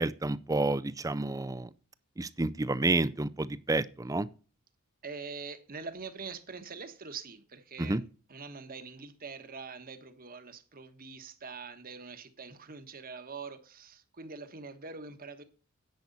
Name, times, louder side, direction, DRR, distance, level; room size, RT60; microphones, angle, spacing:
voice 1, 0.0-1.7 2.2-4.3 7.8-8.0, right 2 dB, 15° right, 0.5 m, -30 dB
voice 2, 5.0-8.0 8.3-15.4, right 4 dB, 40° right, 1.3 m, -44 dB
10.5 x 8.4 x 4.1 m
head